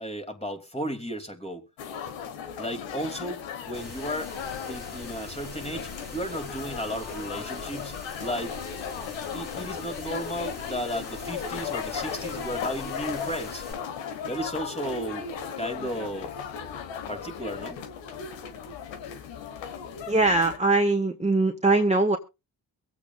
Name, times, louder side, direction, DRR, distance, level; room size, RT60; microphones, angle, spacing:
voice 1, 0.0-1.6 2.6-4.3 4.7-7.9 8.2-8.6 9.3-13.6 14.3-15.3 15.6-16.3 17.1-17.8, equal, 15° left, 2.7 m, -34 dB
sound 1, 1.8-20.6, left 7 dB, 85° left, 1.5 m, -36 dB
sound 2, 3.7-13.7, left 3 dB, 60° left, 6.7 m, -43 dB
voice 2, 20.1-22.2, right 2 dB, 15° right, 1.6 m, -22 dB
23.5 x 8.5 x 2.4 m
supercardioid pair, 50°, 44 cm